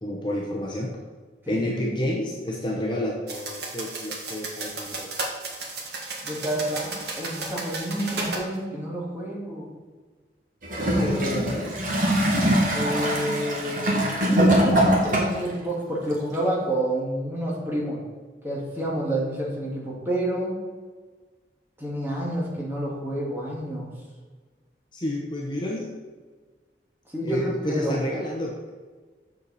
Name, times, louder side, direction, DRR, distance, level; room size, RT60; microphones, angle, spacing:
voice 1, 0.0-0.9 1.5-5.1 11.0-11.8 24.9-25.9 27.2-28.7, left 1 dB, 25° left, -2 dB, 0.8 m, -29 dB
voice 2, 1.4-2.0 6.2-9.7 12.7-18.0 18.4-20.6 21.8-23.9 27.1-28.0, right 1 dB, 10° right, -4 dB, 1.9 m, -29 dB
sound 1, 3.3-8.5, right 3 dB, 70° right, 1.6 m, -34 dB
Gurgling / Toilet flush, 10.6-15.5 16.3-16.4, equal, 50° right, 1.7 m, -22 dB
6.9 x 6.9 x 4.1 m, 1.4 s
head